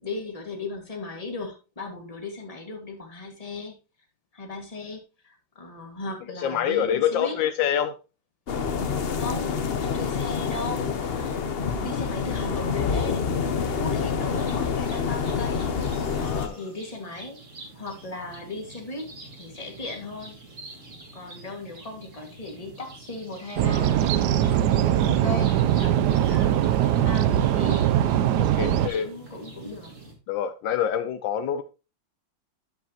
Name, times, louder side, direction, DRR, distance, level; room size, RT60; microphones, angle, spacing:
voice 1, 0.0-3.8 4.3-7.4 9.1-15.8 16.1-17.4 17.7-19.1 19.3-20.4 21.1-24.0 24.8-27.9 28.5-29.9, left 3 dB, 20° left, 1.9 m, -37 dB
voice 2, 6.4-7.9 16.2-16.6 28.4-29.1 30.3-31.6, left 9 dB, 80° left, 1.3 m, -26 dB
sound 1, 8.5-16.5, left 6 dB, 60° left, 0.6 m, -27 dB
sound 2, 14.3-30.1, right 2 dB, 40° right, 2.3 m, -46 dB
sound 3, 23.6-28.9, right 11 dB, 75° right, 1.0 m, -21 dB
10.5 x 7.4 x 2.9 m
omnidirectional pair, 2.1 m